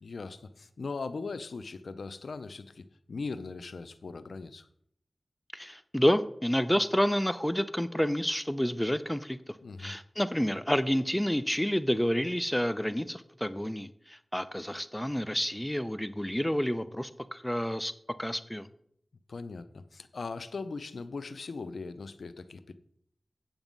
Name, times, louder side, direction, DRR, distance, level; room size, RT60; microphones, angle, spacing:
voice 1, 0.0-4.7 9.6-10.0 19.3-22.7, left 4 dB, 90° left, 13 dB, 0.6 m, -39 dB
voice 2, 5.5-9.4 9.8-17.9 18.2-18.7, equal, 10° left, 13 dB, 0.6 m, -29 dB
9.1 x 7.1 x 5.3 m, 0.69 s
cardioid pair, 45°, 0 cm